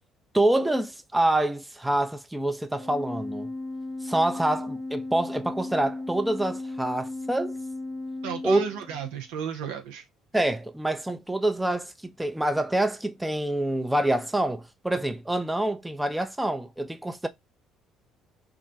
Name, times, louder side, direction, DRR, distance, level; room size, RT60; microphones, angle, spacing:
voice 1, 0.3-3.5 4.0-7.6 8.4-8.7 10.3-17.3, right 1 dB, 10° right, 0.4 m, -26 dB
Organ, 2.7-9.3, left 2 dB, 10° left, 0.7 m, -36 dB
voice 2, 8.2-10.0, right 7 dB, 75° right, 0.5 m, -33 dB
2.4 x 2.1 x 3.8 m
hypercardioid pair, 60°, 0 cm